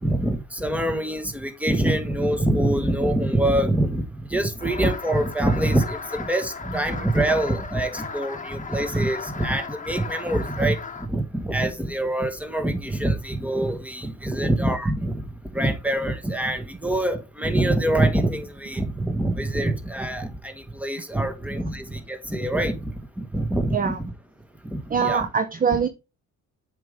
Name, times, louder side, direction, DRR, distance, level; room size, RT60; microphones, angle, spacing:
voice 1, 0.0-15.2 15.5-24.1 24.7-25.3 25.7-25.8, right 1 dB, 5° right, 1.4 m, -25 dB
sound 1, 4.6-11.1, left 5 dB, 25° left, 1.3 m, -36 dB
voice 2, 24.9-25.9, right 6 dB, 30° right, 0.7 m, -23 dB
7.7 x 5.1 x 3.5 m
cardioid pair, 90°, 30 cm